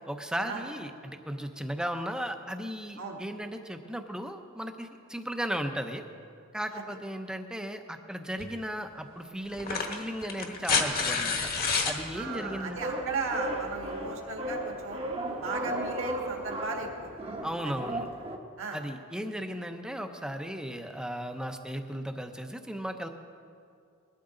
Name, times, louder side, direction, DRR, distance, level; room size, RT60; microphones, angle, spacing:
voice 1, 0.1-6.0 6.5-11.5 11.9-12.8 17.4-18.1 18.7-23.1, equal, 5° right, 6 dB, 0.7 m, -36 dB
sound 1, 8.4-8.5 9.5-12.0 13.5-13.6, left 5 dB, 45° left, 1.4 m, -28 dB
sound 2, 11.9-18.4, right 1 dB, 25° right, 0.9 m, -36 dB
voice 2, 12.1-15.0 15.4-17.1 17.6-17.7 18.6-18.8, right 3 dB, 65° right, 1 dB, 1.8 m, -36 dB
20.0 x 13.0 x 3.8 m, 2.4 s
head